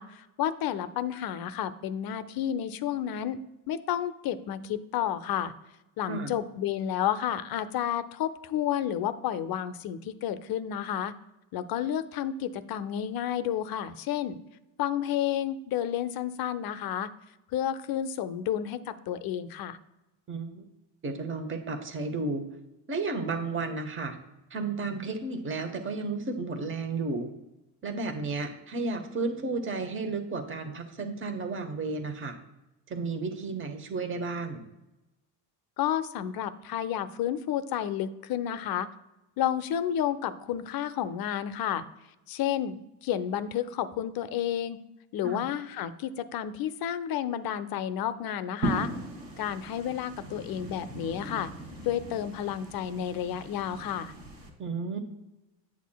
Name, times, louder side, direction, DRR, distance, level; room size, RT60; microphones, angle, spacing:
voice 1, 0.0-3.4 3.7-5.5 6.0-11.1 11.5-14.4 14.8-17.1 17.5-19.8 35.8-38.9 39.4-41.8 42.3-44.8 45.1-48.9 49.4-51.5 51.8-54.1, left 10 dB, 50° left, 12 dB, 0.6 m, -31 dB
voice 2, 20.3-20.6 21.0-22.5 22.9-24.2 24.5-27.3 27.8-32.4 32.9-34.6 45.2-45.4 54.6-55.0, right 3 dB, 25° right, 6 dB, 1.0 m, -33 dB
sound 1, 48.6-54.5, right 2 dB, 75° right, 2.4 m, -38 dB
8.2 x 7.3 x 2.3 m, 0.99 s
supercardioid pair, 95°, 47 cm